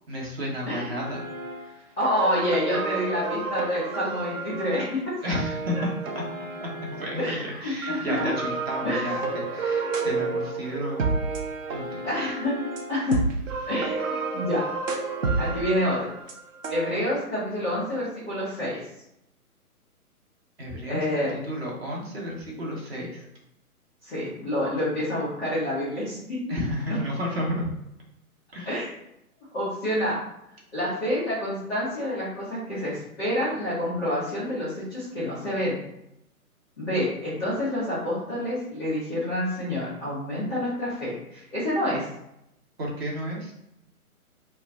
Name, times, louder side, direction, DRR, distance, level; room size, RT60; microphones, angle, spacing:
voice 1, 0.1-1.3 1.6-1.9 5.2-5.9 6.6-11.1 11.7-12.0 20.6-23.3 26.5-27.7 28.5-28.7 42.8-43.5, equal, 40° right, -3 dB, 0.9 m, -32 dB
voice 2, 0.7-1.0 2.0-5.0 7.2-8.3 8.8-9.1 12.0-12.5 12.9-13.2 13.7-14.6 15.4-16.2 16.7-18.8 20.9-21.3 24.0-26.4 28.6-28.9 29.5-30.2 30.7-35.8 36.8-42.1, left 1 dB, ahead, -10 dB, 0.5 m, -28 dB
sound 1, 1.0-1.7 2.0-7.3 7.8-16.9, right 3 dB, 60° right, 0.6 m, -31 dB
2.3 x 2.2 x 3.8 m, 0.81 s
figure-of-eight pair, 135°, 45 cm